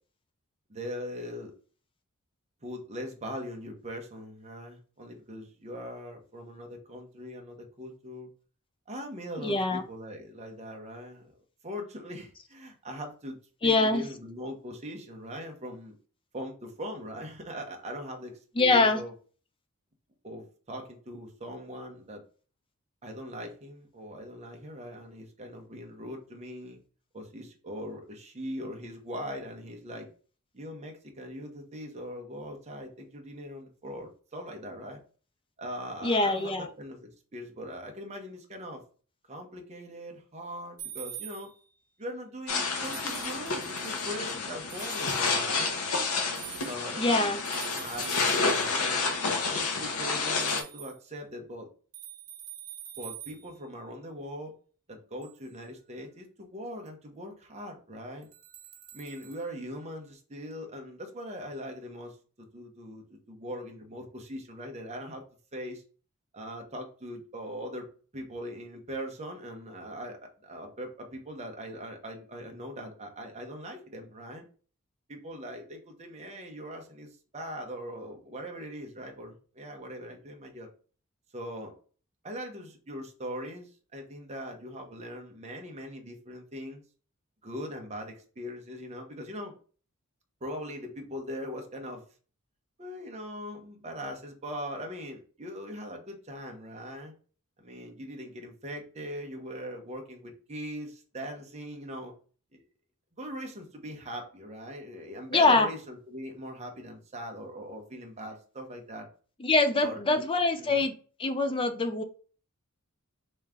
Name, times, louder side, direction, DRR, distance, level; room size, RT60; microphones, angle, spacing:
voice 1, 0.7-1.5 2.6-8.3 8.9-11.3 11.6-13.4 13.6-15.9 16.3-19.1 20.2-22.2 23.0-26.8 27.1-30.1 30.5-35.0 35.6-38.8 39.3-41.5 42.0-45.7 46.6-47.3 47.7-49.1 49.5-51.7 53.0-54.5 54.9-58.3 58.9-62.1 62.5-65.2 65.5-65.8 66.3-67.9 68.1-74.4 75.1-80.7 81.3-81.7 82.2-86.8 87.4-89.5 90.4-92.0 92.8-97.1 97.6-102.1 102.5-102.6 103.2-109.1 109.8-110.2 110.6-110.9, equal, 30° right, 3 dB, 0.9 m, -41 dB
voice 2, 9.4-9.8 13.6-14.0 18.6-19.0 36.0-36.7 47.0-47.4 105.3-105.7 109.4-110.9 111.2-112.0, left 3 dB, 25° left, 8 dB, 0.5 m, -24 dB
sound 1, 40.8-41.7 42.8-44.1 44.7-45.4 46.4-47.0 47.4-48.8 50.4-51.0 51.9-53.5 55.2-55.4 56.9-57.0 58.2-59.5, right 11 dB, 70° right, 1.2 m, -45 dB
sound 2, 42.5-50.6, left 4 dB, 80° left, 0.8 m, -29 dB
3.5 x 3.1 x 3.6 m, 0.40 s
head